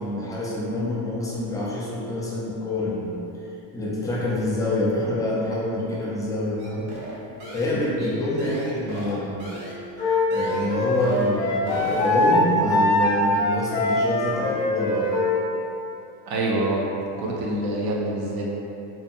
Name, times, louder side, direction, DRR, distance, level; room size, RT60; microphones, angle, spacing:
voice 1, 0.0-6.9 7.5-9.5 10.3-15.3, left 2 dB, 10° left, -7 dB, 0.4 m, -26 dB
sound 1, 6.6-10.7 11.0-11.3 11.6-12.4, right 1 dB, 80° right, 0.9 m, -37 dB
Wind instrument woodwind instrument, 10.0-15.4, left 1 dB, 70° left, 0.6 m, -22 dB
voice 2, 16.3-16.9 17.2-18.4, right 1 dB, 55° right, -3 dB, 0.6 m, -25 dB
2.7 x 2.2 x 2.5 m, 2.9 s
supercardioid pair, 105°, 45 cm